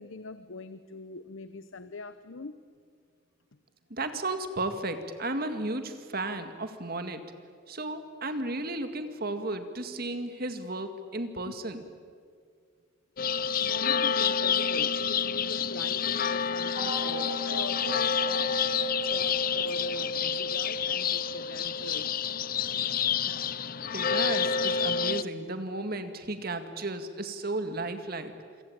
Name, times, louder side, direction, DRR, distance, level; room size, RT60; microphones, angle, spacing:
voice 1, 0.0-2.5 11.4-11.5 13.6-18.8 19.1-22.2, left 3 dB, 75° left, 12 dB, 0.9 m, -42 dB
voice 2, 3.9-7.2 7.7-11.8 23.3-23.4 23.9-28.3, right 2 dB, 50° right, 8 dB, 2.1 m, -34 dB
sound 1, 13.2-25.2, left 6 dB, 45° left, 0.6 m, -28 dB
sound 2, 16.7-21.7, left 1 dB, 25° right, 2.7 m, -40 dB
27.5 x 24.0 x 8.9 m, 2.1 s
head